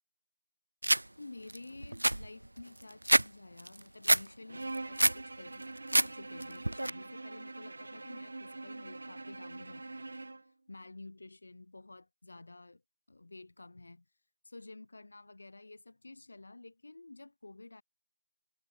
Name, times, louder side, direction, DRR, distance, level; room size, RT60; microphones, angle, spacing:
sound 1, 0.8-1.0 1.5-1.6 1.8-3.3 3.6-4.2 4.6-5.2 5.6-6.1 6.4-6.9, right 1 dB, 60° right, 0.6 m, -26 dB
voice 1, 1.1-10.1 10.5-12.8 13.1-14.1 14.4-17.8, left 2 dB, 35° left, 2.0 m, -51 dB
Bowed string instrument, 4.5-10.5, right 2 dB, 35° right, 1.4 m, -44 dB
figure-of-eight pair, 170°, 0 cm